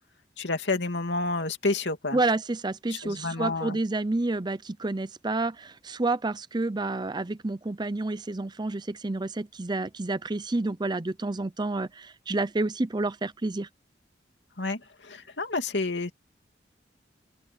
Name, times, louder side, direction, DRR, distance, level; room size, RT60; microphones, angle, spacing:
voice 1, 0.4-2.2 2.9-3.8 14.6-16.1, left 3 dB, 80° left, 2.6 m, -29 dB
voice 2, 2.1-13.7, right 2 dB, 25° right, 0.6 m, -29 dB
open air
head